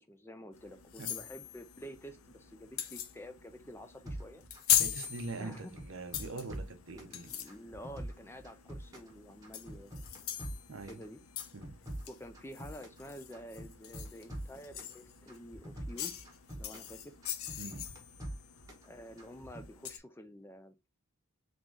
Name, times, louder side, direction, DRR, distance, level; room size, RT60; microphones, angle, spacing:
voice 1, 0.0-4.4 5.4-5.7 6.9-10.0 10.8-11.2 12.1-16.2 16.6-17.1 18.8-20.8, equal, 10° left, 0.3 m, -49 dB
sound 1, 0.5-20.0, left 11 dB, 70° left, 0.6 m, -40 dB
sound 2, 4.1-5.2 5.5-7.1 7.5-9.1 9.4-11.0 11.4-13.0 13.3-15.0 15.3-16.9 17.2-18.9 19.2-19.7, right 1 dB, 15° right, 1.3 m, -44 dB
voice 2, 4.8-7.3 10.7-11.0 11.5-11.8 17.6-18.0, right 3 dB, 60° right, 0.7 m, -43 dB
3.7 x 3.1 x 3.5 m
head